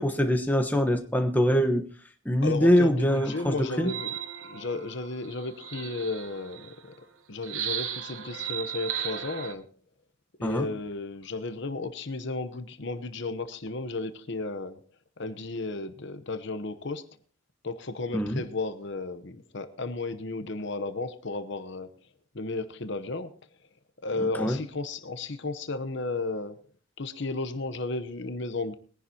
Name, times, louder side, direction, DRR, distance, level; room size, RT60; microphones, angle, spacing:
voice 1, 0.0-1.8 2.2-3.9 10.4-10.7 18.1-18.4 24.2-24.6, equal, 10° left, 4 dB, 1.1 m, -24 dB
voice 2, 2.4-4.2 4.4-6.9 7.3-9.7 10.4-14.8 15.2-17.0 17.6-21.9 22.3-23.3 24.0-26.6 27.0-28.7, left 3 dB, 55° left, 10 dB, 0.9 m, -34 dB
sound 1, 3.1-6.8 7.4-9.5, right 9 dB, 70° right, 1.0 m, -36 dB
21.5 x 10.5 x 2.8 m, 0.43 s
head